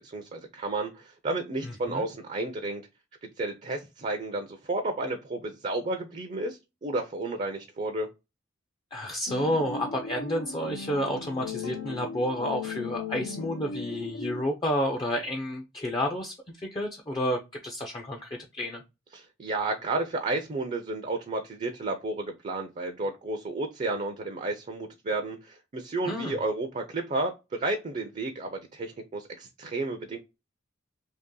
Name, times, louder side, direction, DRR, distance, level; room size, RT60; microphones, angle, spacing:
voice 1, 0.0-2.8 3.2-8.1 19.1-30.2, right 2 dB, 35° right, 6 dB, 0.5 m, -32 dB
voice 2, 1.6-2.1 8.9-18.8 26.0-26.4, equal, 25° left, 2 dB, 0.5 m, -30 dB
sound 1, 9.3-14.4, left 5 dB, 85° left, 0.5 m, -37 dB
2.9 x 2.7 x 3.7 m, 0.25 s
head